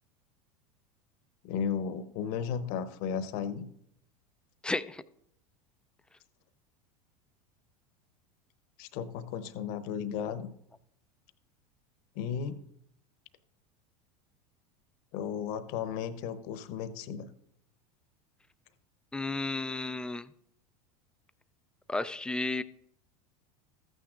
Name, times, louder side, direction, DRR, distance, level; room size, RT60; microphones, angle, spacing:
voice 1, 1.4-3.7 8.8-10.5 12.2-12.6 15.1-17.3, left 7 dB, 60° left, 12 dB, 0.9 m, -34 dB
voice 2, 4.6-5.0 19.1-20.3 21.9-22.6, left 2 dB, 5° left, 14 dB, 0.3 m, -32 dB
14.0 x 9.0 x 2.4 m, 0.74 s
hypercardioid pair, 95°, 20 cm